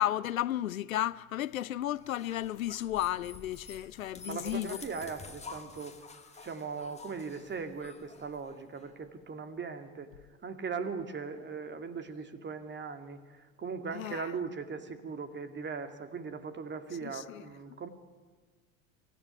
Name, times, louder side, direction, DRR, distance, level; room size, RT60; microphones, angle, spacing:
voice 1, 0.0-4.8 13.9-14.3 17.0-17.4, left 13 dB, 80° left, 0.7 m, -33 dB
sound 1, 1.9-8.9, left 4 dB, 15° left, 2.1 m, -50 dB
voice 2, 4.2-6.1 6.3-10.1 10.4-17.9, right 5 dB, 25° right, 2.3 m, -39 dB
24.5 x 15.0 x 9.2 m
hypercardioid pair, 75°, 40 cm